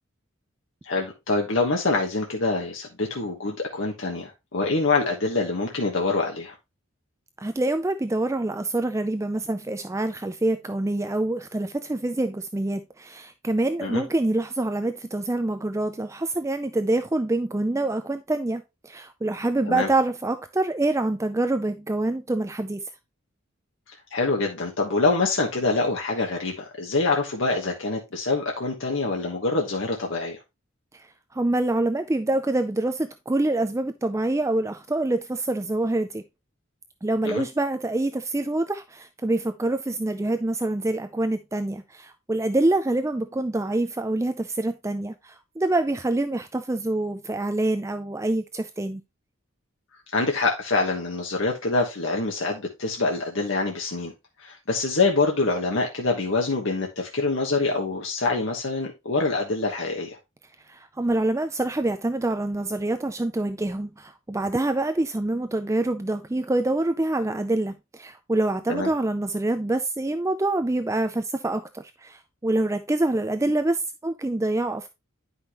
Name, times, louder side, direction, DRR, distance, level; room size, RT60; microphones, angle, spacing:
voice 1, 0.8-6.5 13.8-14.0 19.7-19.9 24.1-30.4 37.2-37.4 50.1-54.1 54.4-60.2 68.7-68.9, left 3 dB, 65° left, 1.3 m, -25 dB
voice 2, 7.4-22.8 30.9-36.2 37.0-49.0 60.7-74.9, right 2 dB, 15° right, 0.4 m, -26 dB
9.8 x 5.5 x 2.9 m
head